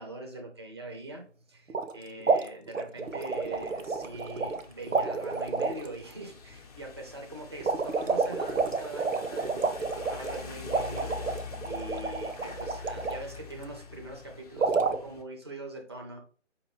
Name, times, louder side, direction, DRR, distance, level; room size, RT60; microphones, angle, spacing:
voice 1, 0.0-16.2, right 1 dB, 20° right, 0.4 m, -42 dB
sound 1, 1.7-1.9 2.2-4.6 4.9-5.9 7.6-13.2 14.6-15.0, right 4 dB, 90° right, 0.7 m, -29 dB
sound 2, 3.0-15.2, left 6 dB, 30° left, 0.7 m, -45 dB
5.0 x 2.8 x 3.1 m
figure-of-eight pair, 145°, 37 cm